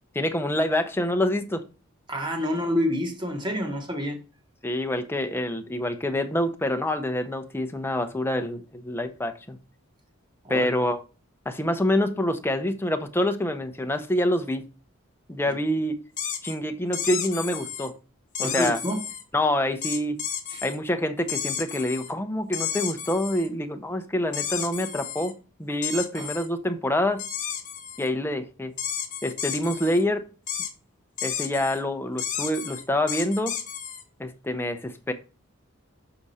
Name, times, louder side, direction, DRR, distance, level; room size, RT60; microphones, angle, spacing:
voice 1, 0.1-1.6 4.6-9.6 10.5-11.0 11.5-14.6 15.3-16.0 16.4-17.9 18.4-18.8 19.3-20.2 20.6-27.2 28.0-28.7 29.2-30.3 31.2-33.5 34.2-35.1, left 1 dB, 10° left, 0.7 m, -26 dB
voice 2, 2.1-4.2 10.4-10.6 15.5-15.6 18.4-19.1 20.5-20.6 26.2-26.3, left 1 dB, 20° right, 1.3 m, -28 dB
sound 1, 16.2-16.5 16.9-17.9 18.3-19.2 19.8-20.8 21.3-22.1 22.5-23.5 24.3-25.3 25.8-26.5 27.2-28.1 28.8-30.0 30.5-30.7 31.2-31.8 32.2-34.0, left 8 dB, 40° left, 1.1 m, -32 dB
6.6 x 4.9 x 4.2 m
head